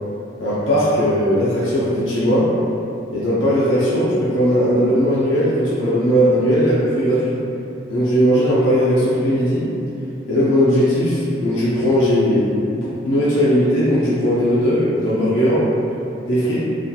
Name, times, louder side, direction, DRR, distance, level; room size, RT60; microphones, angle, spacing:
voice 1, 0.4-2.5 3.1-7.3 7.9-9.7 10.3-12.5 12.8-15.7 16.3-16.6, equal, 80° left, -10 dB, 0.5 m, -18 dB
2.4 x 2.3 x 2.7 m, 2.7 s
head